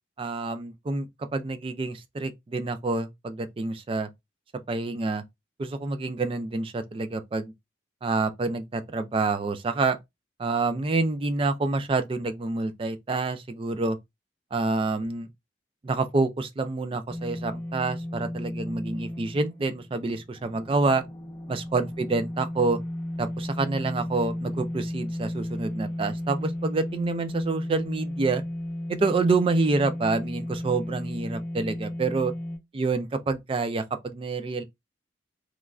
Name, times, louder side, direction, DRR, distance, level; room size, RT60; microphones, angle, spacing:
voice 1, 0.2-4.1 4.7-5.2 5.6-7.5 8.0-10.0 10.4-14.0 14.5-15.3 15.8-21.0 21.5-22.8 23.2-28.4 28.9-32.3 32.7-34.6, right 3 dB, 30° right, 0.3 m, -27 dB
sound 1, 17.1-32.6, left 1 dB, 15° left, 0.8 m, -34 dB
3.1 x 2.4 x 2.3 m
head